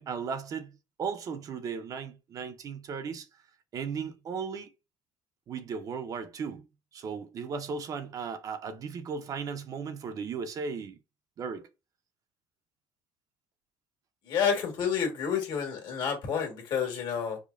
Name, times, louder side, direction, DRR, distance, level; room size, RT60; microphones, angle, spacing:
voice 1, 0.0-3.3 3.7-4.7 5.5-6.7 6.9-11.0 11.4-11.7, right 6 dB, 45° right, 0.6 m, -36 dB
voice 2, 14.2-17.4, left 7 dB, 60° left, 1.5 m, -29 dB
4.9 x 2.1 x 2.5 m
cardioid pair, 115°, 9 cm